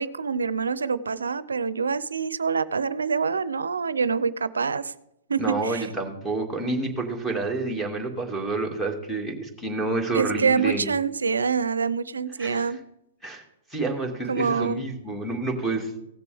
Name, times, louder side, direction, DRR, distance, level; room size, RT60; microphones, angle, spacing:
voice 1, 0.0-4.9 5.3-5.9 10.1-12.8 14.3-14.8, right 5 dB, 85° right, 17 dB, 0.5 m, -26 dB
voice 2, 5.4-10.9 12.4-12.7 13.2-13.4 13.7-16.0, right 2 dB, ahead, 4 dB, 2.2 m, -29 dB
17.0 x 6.7 x 3.5 m, 0.83 s
hypercardioid pair, 125°, 0 cm